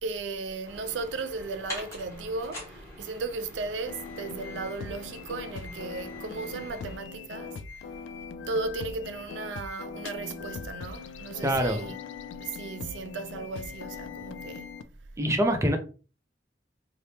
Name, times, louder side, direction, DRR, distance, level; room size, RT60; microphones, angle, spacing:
voice 1, 0.0-7.6 8.5-12.0 12.4-14.7, right 3 dB, 75° right, 0.4 m, -35 dB
sound 1, 0.6-7.0, left 1 dB, 15° left, 1.3 m, -45 dB
sound 2, 3.8-14.8, left 5 dB, 85° left, 0.3 m, -41 dB
voice 2, 11.4-11.8 15.2-15.8, equal, 15° right, 0.5 m, -24 dB
3.3 x 2.0 x 2.7 m
head